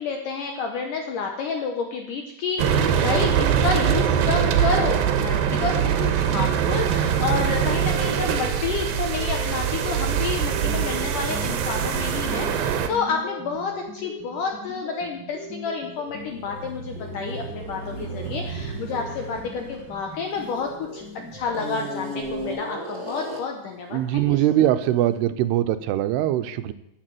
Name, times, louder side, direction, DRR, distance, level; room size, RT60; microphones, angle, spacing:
voice 1, 0.0-21.0 21.3-24.4, left 5 dB, 65° left, 3 dB, 2.2 m, -30 dB
sound 1, 2.6-12.9, right 8 dB, 70° right, 2.6 m, -23 dB
sound 2, 7.5-22.5, equal, 5° right, 2.2 m, -39 dB
sound 3, 16.0-20.9 21.5-23.7, right 1 dB, 55° right, 0.7 m, -35 dB
voice 2, 23.9-26.7, right 12 dB, 90° right, 11 dB, 2.7 m, -22 dB
11.0 x 8.1 x 7.7 m, 0.86 s
omnidirectional pair, 4.6 m